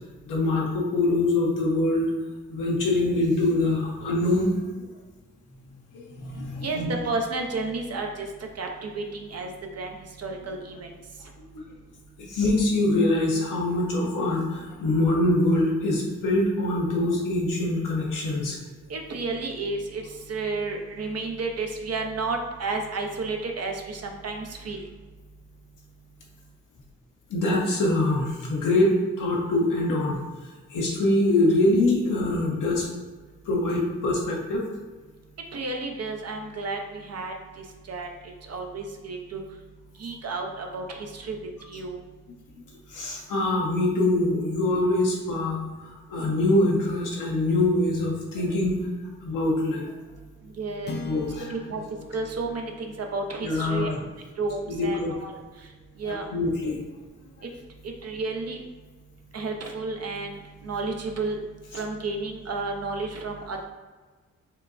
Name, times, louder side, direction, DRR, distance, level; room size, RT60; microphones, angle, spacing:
voice 1, 0.3-2.1 2.5-4.9 5.9-6.9 11.5-11.7 12.2-18.6 27.3-30.2 30.7-32.9 33.4-34.6 42.9-48.8 49.2-49.8 51.0-51.5 53.4-54.0 54.7-55.1 56.0-56.8, left 2 dB, 75° left, -2 dB, 0.9 m, -24 dB
voice 2, 6.6-8.3 8.6-10.9 18.9-24.8 35.5-39.4 40.0-41.4 41.7-42.0 50.6-51.0 51.5-51.8 52.1-54.0 54.4-55.3 56.0-56.3 57.8-58.6 59.3-61.4 61.7-63.6, right 3 dB, 50° right, 2 dB, 0.7 m, -32 dB
sound 1, 50.8-55.3, left 2 dB, 35° left, 0.6 m, -42 dB
5.6 x 2.2 x 2.6 m, 1.3 s
supercardioid pair, 45°, 32 cm